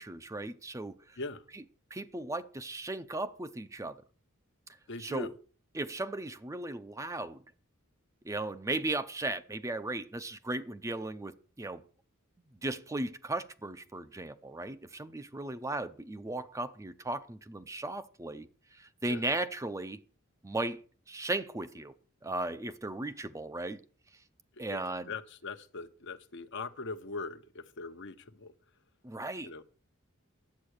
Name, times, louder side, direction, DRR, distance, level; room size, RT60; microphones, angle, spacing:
voice 1, 0.0-1.2 1.5-1.6 1.9-4.0 5.0-5.3 5.7-7.4 8.2-11.8 12.6-20.0 20.4-20.8 21.1-21.9 22.2-23.8 24.6-25.1 29.0-29.5, right 2 dB, 15° right, 0.5 m, -36 dB
voice 2, 4.9-5.3 19.1-19.2 24.6-24.8 25.1-28.5 29.4-29.6, left 3 dB, 60° left, 0.9 m, -41 dB
10.5 x 7.9 x 6.5 m
head